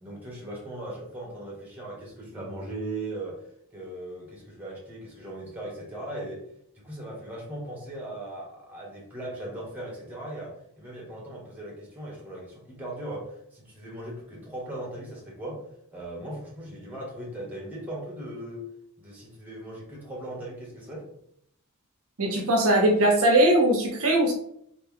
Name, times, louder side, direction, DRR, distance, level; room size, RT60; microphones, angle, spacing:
voice 1, 0.0-3.4 3.7-6.4 6.7-15.6 15.9-18.6 19.0-21.1, right 1 dB, 10° right, -3 dB, 1.2 m, -38 dB
voice 2, 22.2-24.3, right 1 dB, 70° right, 2 dB, 0.7 m, -20 dB
3.2 x 2.7 x 3.5 m, 0.69 s
head